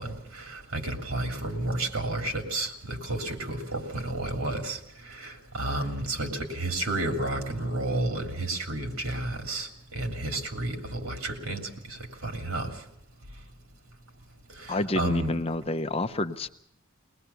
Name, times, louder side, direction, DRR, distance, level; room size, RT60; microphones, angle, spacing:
voice 1, 0.0-12.8 14.5-15.3, right 2 dB, 75° right, 3 dB, 3.0 m, -32 dB
voice 2, 14.7-16.5, left 2 dB, 25° left, 10 dB, 0.7 m, -28 dB
22.5 x 20.0 x 7.0 m, 0.75 s
head